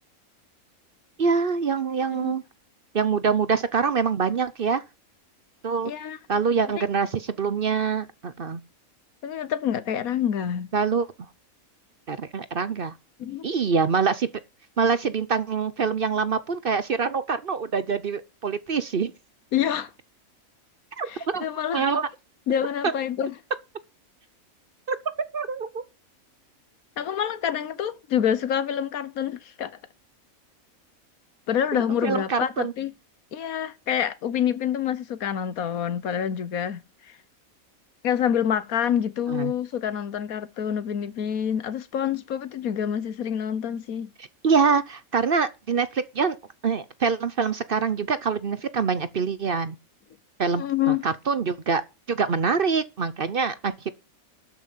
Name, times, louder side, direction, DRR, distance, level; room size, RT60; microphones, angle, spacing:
voice 1, 1.2-2.4 2.9-4.8 5.6-5.9 6.3-8.6 10.7-11.1 12.1-12.9 13.4-14.3 14.8-19.1 21.0-21.5 21.7-22.1 24.9-25.0 25.3-25.8 31.7-32.7 39.3-39.5 44.4-46.4 46.6-49.8 50.4-51.8 52.1-53.9, right 5 dB, 45° right, 0.8 m, -25 dB
voice 2, 5.8-6.2 6.7-6.8 9.2-10.7 13.2-13.5 19.5-19.9 21.0-21.9 22.5-23.3 27.0-29.7 31.5-32.9 33.3-36.8 38.0-44.1 50.5-51.0, left 9 dB, 80° left, 1.5 m, -27 dB
12.5 x 5.8 x 7.3 m
omnidirectional pair, 1.5 m